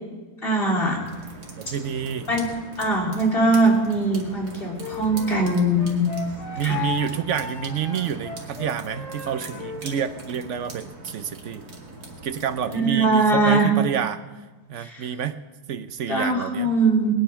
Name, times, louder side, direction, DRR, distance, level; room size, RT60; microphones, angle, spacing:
voice 1, 0.4-1.0 2.3-2.4 2.8-6.1 6.6-6.9 12.7-13.7 14.8-15.1 16.1-17.1, right 2 dB, 25° left, -1 dB, 3.8 m, -21 dB
sound 1, 0.9-12.8, right 2 dB, 50° right, 2.9 m, -41 dB
voice 2, 1.6-2.3 6.6-11.6 12.2-14.2 14.7-15.4 15.7-16.7, right 8 dB, 80° right, 10 dB, 0.6 m, -28 dB
Wind instrument woodwind instrument, 4.8-9.8, left 6 dB, 55° left, 2.1 m, -35 dB
21.0 x 11.0 x 5.8 m, 1.3 s
omnidirectional pair, 2.2 m